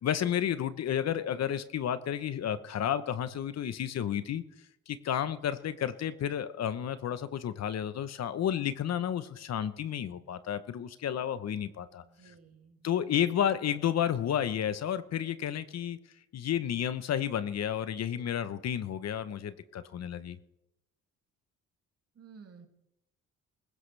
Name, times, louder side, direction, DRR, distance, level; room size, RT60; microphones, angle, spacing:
voice 1, 0.0-4.4 4.9-12.0 12.8-16.0 16.3-20.4, left 9 dB, 60° left, 13 dB, 0.9 m, -31 dB
voice 2, 12.0-13.5 22.2-22.7, right 5 dB, 55° right, 3 dB, 2.6 m, -54 dB
20.0 x 16.0 x 3.4 m, 0.84 s
cardioid pair, 90°, 30 cm